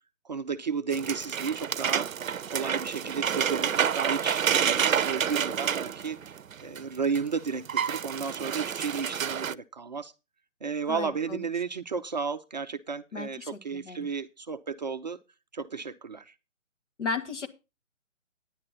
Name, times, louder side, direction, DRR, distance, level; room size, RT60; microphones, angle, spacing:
voice 1, 0.2-2.1 2.5-10.1 10.6-15.2 15.5-16.3, right 5 dB, 35° right, 0.5 m, -33 dB
sound 1, 0.9-6.8 7.2-7.3 7.5-9.5, right 8 dB, 90° right, 0.6 m, -29 dB
voice 2, 10.9-11.4 13.1-14.1 17.0-17.5, left 4 dB, 60° left, 2.0 m, -35 dB
10.5 x 10.0 x 4.2 m
figure-of-eight pair, 145°, 39 cm